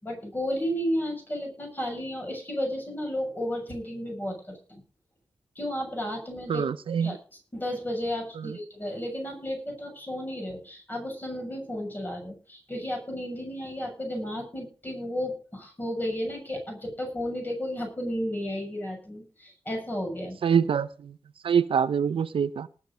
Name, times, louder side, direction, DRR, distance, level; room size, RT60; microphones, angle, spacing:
voice 1, 0.0-4.8 5.5-6.6 7.0-7.2 7.5-20.4, equal, 20° left, 1 dB, 6.8 m, -33 dB
voice 2, 6.5-7.2 8.4-8.6 20.4-21.1 21.4-22.7, right 7 dB, 70° right, 12 dB, 0.7 m, -25 dB
19.0 x 7.6 x 5.1 m, 0.37 s
wide cardioid pair, 160°, 9 cm